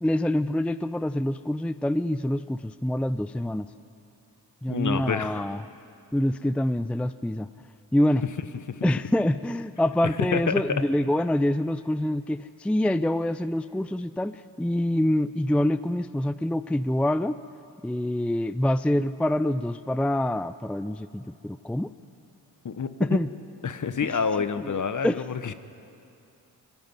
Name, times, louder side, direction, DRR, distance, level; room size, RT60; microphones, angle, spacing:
voice 1, 0.0-3.7 4.6-5.7 6.1-7.5 7.9-8.2 8.8-17.4 17.8-21.9 23.0-23.3 24.0-24.2 24.6-24.7 25.0-25.2, left 1 dB, 5° left, 14 dB, 0.5 m, -26 dB
voice 2, 4.7-5.5 8.7-8.9 10.3-10.6 22.6-23.2 23.6-25.5, left 6 dB, 45° left, 12 dB, 1.2 m, -28 dB
20.5 x 15.0 x 9.6 m, 2.6 s
cardioid pair, 50°, 41 cm